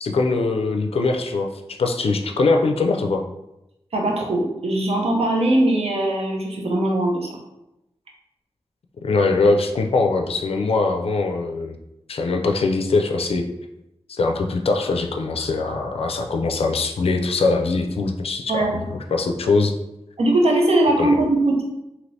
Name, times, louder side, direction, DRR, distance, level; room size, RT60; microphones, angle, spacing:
voice 1, 0.0-3.2 9.0-11.7 12.1-13.5 14.1-19.7 21.0-21.2, left 3 dB, 70° left, 3 dB, 0.3 m, -22 dB
voice 2, 3.9-7.4 18.5-18.8 20.2-21.6, right 1 dB, 80° right, 0 dB, 0.6 m, -20 dB
3.2 x 2.8 x 2.6 m, 0.90 s
wide cardioid pair, 70°, 10 cm